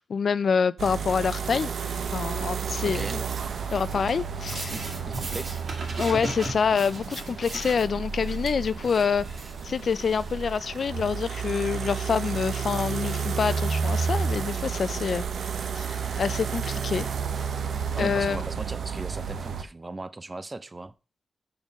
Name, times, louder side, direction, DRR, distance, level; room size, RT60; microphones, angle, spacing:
voice 1, 0.0-1.7 2.1-3.2 3.7-4.7 6.0-9.3 9.6-15.2 15.8-17.1 18.0-18.4, left 6 dB, 65° left, 0.4 m, -26 dB
sound 1, 0.8-19.6, right 6 dB, 85° right, 0.7 m, -31 dB
sound 2, 1.7-11.5, right 2 dB, 60° right, 2.0 m, -40 dB
voice 2, 2.8-3.2 4.5-5.6 17.9-20.9, right 2 dB, 25° right, 0.6 m, -38 dB
7.0 x 3.7 x 6.3 m
wide cardioid pair, 105°, 0 cm